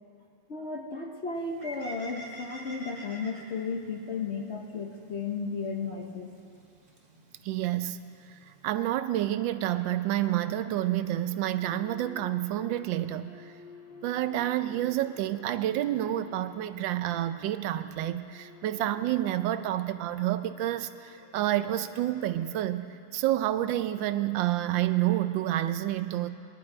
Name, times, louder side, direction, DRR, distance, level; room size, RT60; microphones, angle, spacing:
voice 1, 0.5-6.3, left 4 dB, 45° left, 2 dB, 0.9 m, -34 dB
Bird, 1.3-8.6, right 1 dB, 25° right, 1.6 m, -49 dB
voice 2, 7.4-8.0 8.6-13.5 14.0-22.9 23.1-26.3, right 13 dB, 85° right, 12 dB, 1.3 m, -29 dB
sound 1, 9.5-22.7, left 4 dB, 70° left, 2.0 m, -53 dB
21.0 x 11.5 x 4.9 m, 2.5 s
omnidirectional pair, 2.0 m